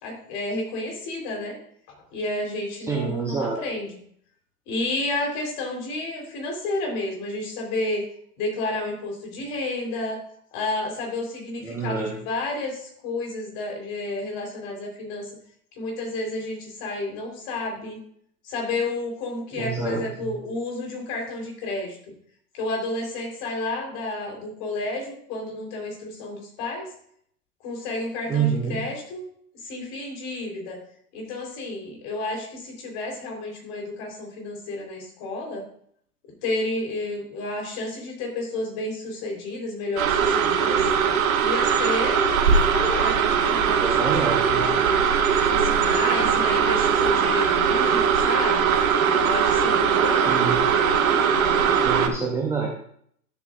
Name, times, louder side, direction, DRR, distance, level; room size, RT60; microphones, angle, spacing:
voice 1, 0.0-1.6 1.9-4.0 4.7-8.1 8.4-10.2 10.5-15.3 15.7-18.0 18.4-22.0 22.5-26.9 27.6-29.3 29.5-30.8 31.1-35.6 36.4-40.8 41.4-45.0 45.5-48.7 49.2-50.3, left 2 dB, 40° left, 1 dB, 3.9 m, -31 dB
voice 2, 2.8-3.6 11.6-12.2 19.6-20.3 28.3-28.8 43.7-44.8 50.1-50.6 51.8-52.7, right 5 dB, 5° right, 0 dB, 0.6 m, -27 dB
sound 1, 40.0-52.1, right 7 dB, 60° right, 1.3 m, -20 dB
12.5 x 7.8 x 2.5 m, 0.64 s
hypercardioid pair, 115°, 48 cm